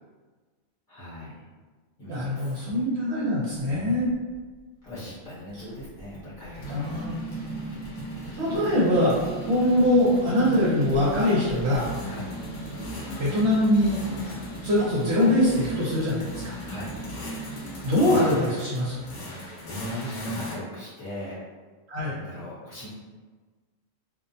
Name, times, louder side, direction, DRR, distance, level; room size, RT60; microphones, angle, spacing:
voice 1, 0.9-1.4 2.0-2.6 3.7-4.1 4.8-7.1 12.0-12.3 16.6-16.9 19.3-21.4 22.0-22.9, left 1 dB, 40° left, -10 dB, 0.9 m, -40 dB
voice 2, 2.1-4.1 6.7-7.2 8.4-9.1 9.5-11.9 13.2-14.0 14.6-16.5 17.8-19.0 21.9-22.2, left 1 dB, 60° right, -7 dB, 0.9 m, -23 dB
sound 1, 4.3-4.4 5.6-20.6, equal, 65° left, 0.4 m, -36 dB
2.4 x 2.1 x 2.6 m, 1.4 s
omnidirectional pair, 1.4 m